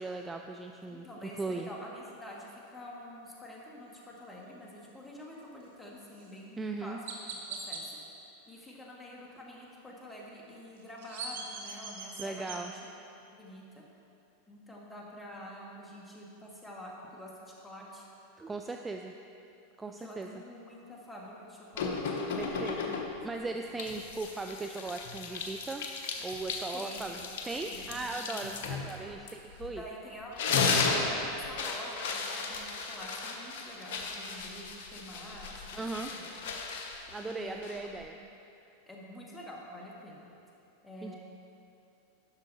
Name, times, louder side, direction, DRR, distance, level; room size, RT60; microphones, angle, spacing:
voice 1, 0.0-1.1 1.4-1.7 6.6-7.0 12.2-12.7 18.4-19.1 19.8-20.3 22.4-22.8 23.2-25.9 26.2-27.2 27.4-29.8 35.7-36.1 37.1-38.2 41.0-41.2, right 3 dB, 15° right, 4 dB, 0.4 m, -38 dB
voice 2, 0.9-7.0 7.3-8.0 8.5-12.8 13.3-13.8 14.5-18.1 19.9-23.2 26.7-27.0 27.7-28.5 28.8-29.1 29.6-30.4 30.8-35.9 36.1-36.3 37.2-38.2 38.9-40.3 40.8-41.2, equal, 10° left, -3 dB, 1.9 m, -47 dB
Chirp tweet, 6.2-6.3 7.1-7.8 10.8-12.6, right 4 dB, 70° right, 1.2 m, -40 dB
sound 1, 21.8-23.3 23.8-29.9 30.2-38.0, left 4 dB, 65° left, 0.9 m, -35 dB
11.0 x 6.4 x 4.1 m, 2.8 s
hypercardioid pair, 95°, 0 cm